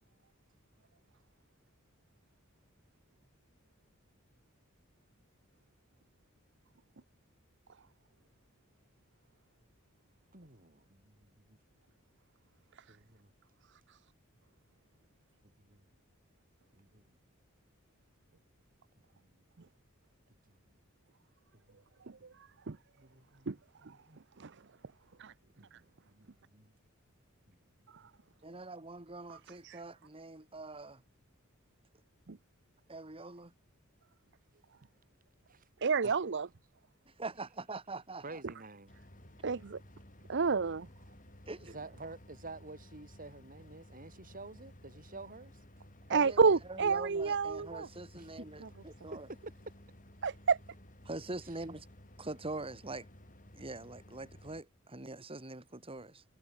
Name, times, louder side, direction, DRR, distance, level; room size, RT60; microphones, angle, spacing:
voice 1, 10.3-11.6 12.9-13.3 15.4-15.8 16.7-17.2 19.1-19.4 20.5-20.6 21.5-21.8 22.3-22.4 22.7-24.2 25.6-26.7 27.5-27.6 27.9-28.1 36.0-36.2 38.2-38.9 41.5-45.6 48.1-48.5 49.1-49.4 51.5-51.6, right 2 dB, 40° right, 4.7 m, -50 dB
voice 2, 28.4-31.0 32.9-33.5 37.1-38.4 41.5-41.8 46.1-49.3 51.1-51.9 52.2-53.1 53.5-56.2, right 2 dB, 25° right, 2.4 m, -44 dB
voice 3, 35.8-36.5 39.4-39.8 40.3-40.9 46.1-47.9 50.2-50.3, right 5 dB, 60° right, 0.7 m, -29 dB
sound 1, 38.9-54.6, left 1 dB, 40° left, 6.3 m, -56 dB
head